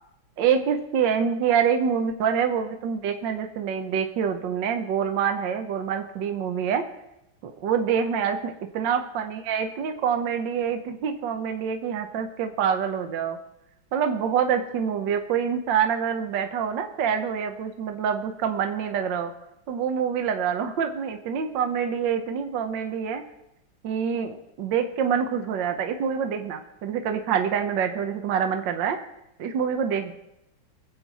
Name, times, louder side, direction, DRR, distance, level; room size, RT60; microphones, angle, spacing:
voice 1, 0.4-6.8 7.4-13.4 13.9-19.3 19.7-23.2 23.8-29.0 29.4-30.1, right 7 dB, 70° right, 6 dB, 1.5 m, -26 dB
22.5 x 7.6 x 4.1 m, 0.87 s
omnidirectional pair, 2.1 m